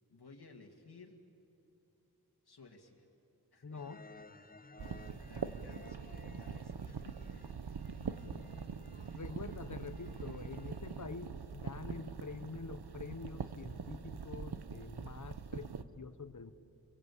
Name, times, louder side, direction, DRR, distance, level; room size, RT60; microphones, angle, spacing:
voice 1, 0.1-1.2 2.4-3.1 3.5-3.8 4.8-7.6 8.0-8.7, left 3 dB, 80° left, 1 dB, 2.2 m, -57 dB
voice 2, 3.6-4.0 9.1-16.5, left 4 dB, 50° left, 11 dB, 1.1 m, -46 dB
sound 1, 3.7-11.1, left 2 dB, 25° left, 0.9 m, -58 dB
sound 2, 4.8-15.8, right 6 dB, 80° right, 0.9 m, -43 dB
28.5 x 23.0 x 8.5 m, 2.9 s
wide cardioid pair, 65°, 38 cm